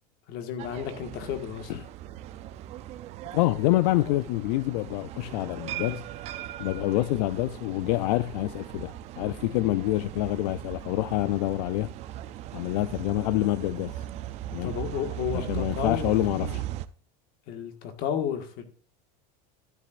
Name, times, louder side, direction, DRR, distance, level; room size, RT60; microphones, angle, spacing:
voice 1, 0.3-1.7 14.6-16.6 17.5-18.6, left 8 dB, 50° left, 1.7 m, -32 dB
sound 1, 0.6-16.9, right 13 dB, 30° right, 0.4 m, -39 dB
voice 2, 3.3-6.0 6.6-11.9 12.5-14.1 14.5-14.7 15.3-16.6, left 17 dB, 75° left, 0.4 m, -27 dB
12.5 x 9.6 x 2.5 m
supercardioid pair, 165°, 21 cm